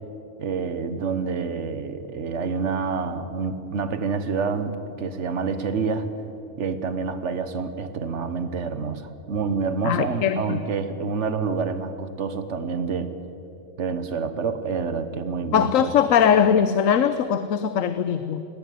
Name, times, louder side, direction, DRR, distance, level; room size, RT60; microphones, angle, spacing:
voice 1, 0.4-6.1 6.6-13.1 13.8-15.9, right 5 dB, 65° right, 11 dB, 1.5 m, -28 dB
voice 2, 9.8-10.6 15.5-18.5, left 8 dB, 80° left, 12 dB, 1.2 m, -20 dB
21.0 x 17.0 x 9.4 m, 2.9 s
omnidirectional pair, 1.3 m